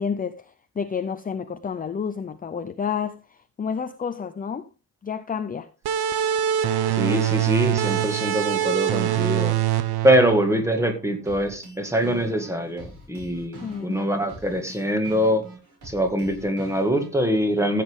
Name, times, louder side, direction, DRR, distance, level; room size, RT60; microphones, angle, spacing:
voice 1, 0.0-4.7 5.0-5.7 13.6-14.0, left 6 dB, 20° left, 0.6 m, -30 dB
sound 1, 5.9-11.1, right 11 dB, 85° right, 1.3 m, -24 dB
voice 2, 6.9-9.5 10.0-15.4 15.8-17.8, equal, 5° right, 2.0 m, -23 dB
sound 2, 11.2-17.3, right 1 dB, 50° right, 6.7 m, -42 dB
14.5 x 8.4 x 3.7 m
wide cardioid pair, 170°, 38 cm